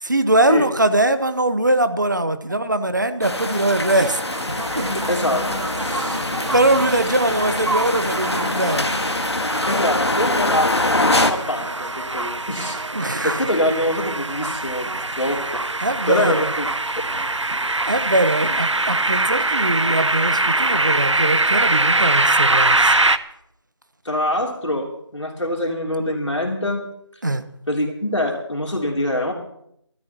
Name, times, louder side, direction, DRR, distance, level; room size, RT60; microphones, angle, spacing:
voice 1, 0.0-4.2 4.5-4.8 6.5-8.9 12.9-13.4 15.8-16.5 17.9-22.9 27.2-27.4, right 1 dB, 40° right, 11 dB, 1.1 m, -21 dB
sound 1, 3.2-11.3, left 2 dB, 65° left, 1.7 m, -24 dB
sound 2, 4.3-23.2, right 2 dB, 85° right, 0.9 m, -23 dB
voice 2, 5.1-5.4 5.8-6.2 9.6-15.6 16.1-16.7 24.1-24.9 25.1-26.8 27.7-29.3, left 1 dB, 80° left, 0 dB, 3.3 m, -24 dB
26.0 x 13.0 x 3.0 m, 0.75 s
figure-of-eight pair, 175°, 15 cm